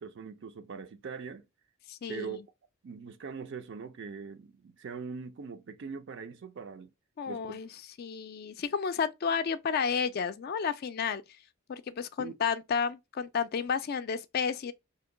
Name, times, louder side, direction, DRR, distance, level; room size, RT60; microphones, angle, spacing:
voice 1, 0.0-1.5 2.1-2.4 2.8-6.9 7.3-7.6 12.2-12.3, right 5 dB, 60° right, 0.4 m, -41 dB
voice 2, 1.9-2.4 7.2-7.7 8.0-11.2 11.7-14.7, left 6 dB, 50° left, 0.3 m, -31 dB
2.7 x 2.2 x 3.7 m
head